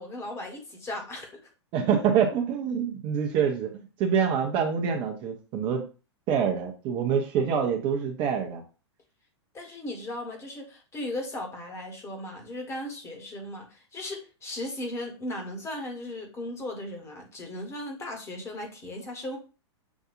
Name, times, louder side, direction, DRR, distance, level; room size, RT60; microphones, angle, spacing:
voice 1, 0.0-1.4 9.5-19.4, left 1 dB, 20° left, 2 dB, 1.3 m, -37 dB
voice 2, 1.7-5.8 6.3-8.6, right 7 dB, 35° right, 3 dB, 0.9 m, -26 dB
7.1 x 2.6 x 2.5 m, 0.33 s
figure-of-eight pair, 100°, 14 cm